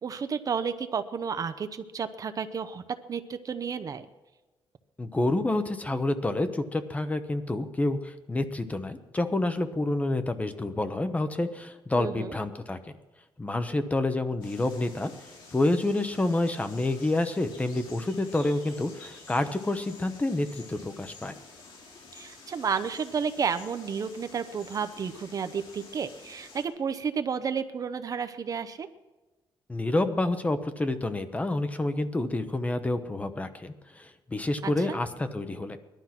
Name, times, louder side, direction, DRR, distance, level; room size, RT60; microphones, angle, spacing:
voice 1, 0.0-2.8 3.1-4.1 12.0-12.3 22.1-28.9 34.6-35.0, right 6 dB, 40° right, 10 dB, 0.7 m, -32 dB
voice 2, 5.0-12.8 13.4-15.1 15.5-21.3 29.7-35.8, left 2 dB, 15° left, 10 dB, 0.8 m, -28 dB
sound 1, 14.4-26.6, left 4 dB, 65° left, 3.5 m, -50 dB
19.5 x 12.0 x 5.9 m, 1.1 s
cardioid pair, 150°, 9 cm